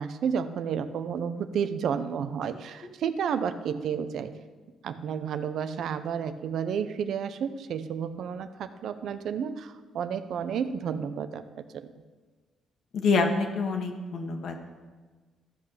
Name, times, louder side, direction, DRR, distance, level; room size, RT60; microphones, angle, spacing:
voice 1, 0.0-4.3 4.8-11.9, right 7 dB, 70° right, 11 dB, 0.7 m, -31 dB
voice 2, 12.9-14.6, left 4 dB, 65° left, 4 dB, 1.6 m, -26 dB
14.0 x 5.9 x 6.6 m, 1.4 s
cardioid pair, 90°, 0 cm